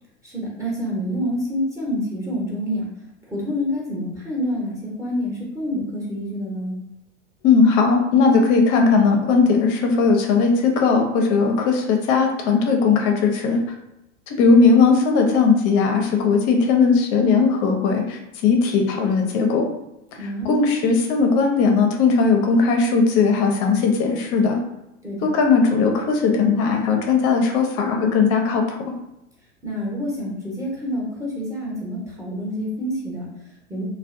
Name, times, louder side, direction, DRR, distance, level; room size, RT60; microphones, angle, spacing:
voice 1, 0.2-2.9 3.3-6.8 20.2-20.6 25.0-25.3 29.6-33.8, equal, 10° right, -4 dB, 0.7 m, -27 dB
voice 2, 7.4-13.6 14.3-19.7 20.5-24.6 25.2-28.9, left 4 dB, 40° left, 3 dB, 0.5 m, -18 dB
2.5 x 2.1 x 2.5 m, 0.90 s
hypercardioid pair, 110°, 38 cm